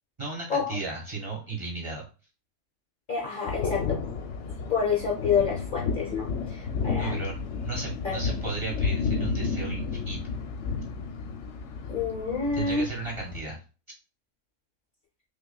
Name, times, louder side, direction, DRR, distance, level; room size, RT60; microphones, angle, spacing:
voice 1, 0.2-2.1 7.0-10.4 12.5-13.6, right 3 dB, 25° right, -2 dB, 1.2 m, -35 dB
voice 2, 3.1-4.0 4.5-7.2 8.0-8.2 11.9-12.9, left 5 dB, 50° left, 0 dB, 0.8 m, -28 dB
sound 1, 3.5-13.4, left 5 dB, 75° left, 0.9 m, -32 dB
5.6 x 2.3 x 2.3 m, 0.34 s
omnidirectional pair, 1.3 m